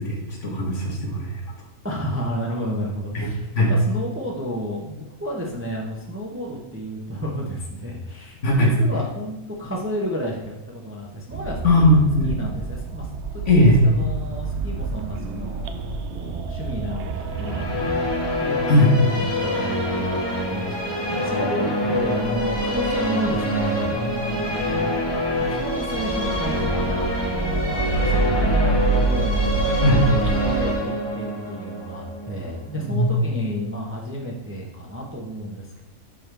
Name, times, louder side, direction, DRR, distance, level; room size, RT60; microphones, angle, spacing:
voice 1, 0.0-1.3 3.1-3.3 3.6-3.7 8.4-8.7 11.6-12.3 13.5-13.8 18.7-19.0 29.8-30.0 32.8-33.1, left 1 dB, 55° left, 0 dB, 1.5 m, -18 dB
voice 2, 1.8-12.0 12.2-20.8 21.1-25.0 25.5-27.0 27.2-35.8, equal, 10° right, -2 dB, 0.7 m, -31 dB
sound 1, 11.3-30.7, right 4 dB, 65° right, 0.7 m, -29 dB
sound 2, 17.2-33.3, left 1 dB, 20° left, 1.3 m, -26 dB
10.5 x 3.7 x 3.4 m, 1.0 s
omnidirectional pair, 1.5 m